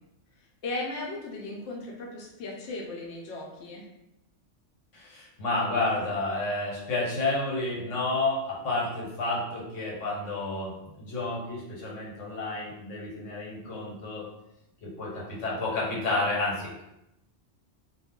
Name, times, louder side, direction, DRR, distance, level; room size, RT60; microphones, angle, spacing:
voice 1, 0.6-3.8, left 2 dB, 70° left, -2 dB, 0.8 m, -36 dB
voice 2, 4.9-14.3 14.8-16.8, left 2 dB, 90° left, -5 dB, 1.3 m, -30 dB
2.3 x 2.1 x 3.5 m, 0.87 s
omnidirectional pair, 1.2 m